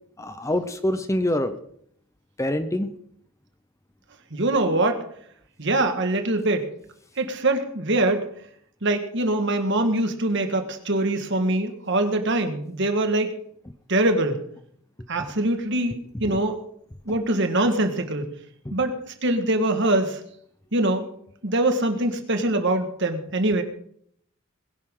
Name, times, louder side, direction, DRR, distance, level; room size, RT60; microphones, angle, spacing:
voice 1, 0.2-1.5 2.4-2.9 16.2-16.4 18.6-18.7, left 1 dB, 15° left, 10 dB, 0.7 m, -25 dB
voice 2, 4.3-5.0 5.6-6.7 7.2-8.3 8.8-13.3 13.9-14.4 15.1-16.6 17.1-18.3 18.7-20.2 20.7-21.1 21.4-23.6, right 2 dB, 55° right, 6 dB, 1.7 m, -23 dB
21.0 x 11.5 x 3.8 m, 0.67 s
head